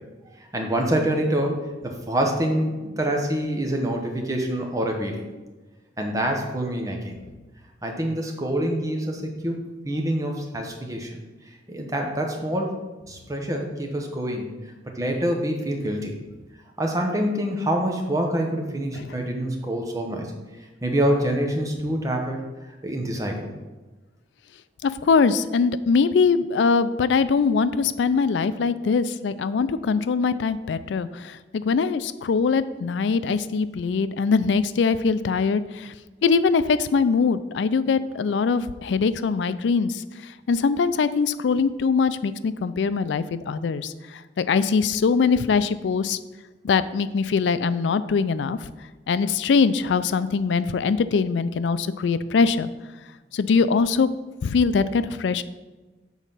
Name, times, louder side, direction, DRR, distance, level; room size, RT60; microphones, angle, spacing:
voice 1, 0.5-5.2 6.0-7.1 7.8-9.6 9.8-11.1 11.7-12.8 13.1-14.6 15.0-16.1 16.8-20.3 20.8-22.4 22.8-23.5, right 1 dB, 20° right, 2 dB, 0.9 m, -26 dB
voice 2, 24.8-35.9 36.2-40.0 40.5-43.9 44.4-46.2 46.6-48.6 49.1-52.7 53.3-54.1 54.4-55.4, left 5 dB, 80° left, 14 dB, 0.4 m, -22 dB
7.2 x 4.1 x 5.5 m, 1.2 s
head